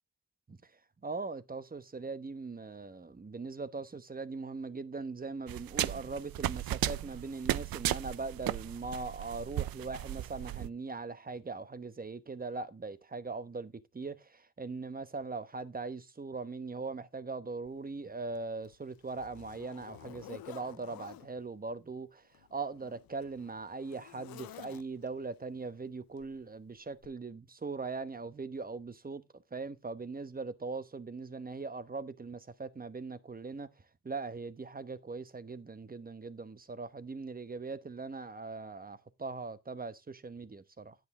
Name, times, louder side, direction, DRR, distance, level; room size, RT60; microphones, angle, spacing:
voice 1, 1.0-22.2 22.5-33.7 34.0-41.0, right 4 dB, 25° right, 1.1 m, -40 dB
sound 1, 5.5-10.7, right 14 dB, 80° right, 0.5 m, -35 dB
Zipper (clothing), 17.6-17.8 18.3-21.3 22.2-25.2 26.2-26.4 27.0-27.1, left 14 dB, 85° left, 0.5 m, -51 dB
9.9 x 8.0 x 3.7 m
cardioid pair, 75°, 34 cm